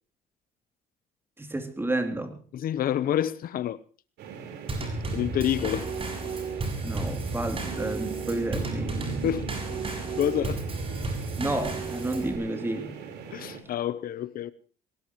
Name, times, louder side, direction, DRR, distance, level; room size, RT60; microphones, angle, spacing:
voice 1, 1.4-2.4 6.8-9.0 11.4-13.0, right 2 dB, 15° right, 3.1 m, -31 dB
voice 2, 2.5-3.8 4.8-5.9 9.0-9.5 9.8-10.6 13.3-14.5, left 11 dB, 60° left, 0.9 m, -28 dB
sound 1, 4.2-13.6, right 6 dB, 80° right, 4.6 m, -40 dB
Drum kit / Snare drum / Bass drum, 4.7-12.4, right 3 dB, 35° right, 7.1 m, -33 dB
23.0 x 19.5 x 3.2 m
cardioid pair, 110°, 17 cm